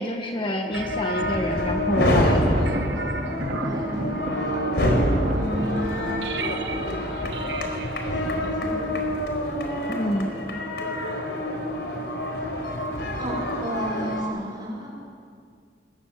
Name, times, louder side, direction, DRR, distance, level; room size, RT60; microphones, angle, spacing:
voice 1, 0.0-2.7 9.9-10.3, equal, 30° left, 3 dB, 1.4 m, -27 dB
sound 1, 0.7-14.2, left 1 dB, 65° left, 4.5 m, -27 dB
sound 2, 0.7-9.6, right 3 dB, 85° right, 1.3 m, -36 dB
Thunder, 1.8-7.6, right 1 dB, 50° right, 2.8 m, -31 dB
voice 2, 3.6-4.6 4.9-6.0 8.1-8.9 13.2-14.9, equal, 25° right, -3 dB, 7.8 m, -33 dB
27.0 x 21.0 x 7.4 m, 2.1 s
head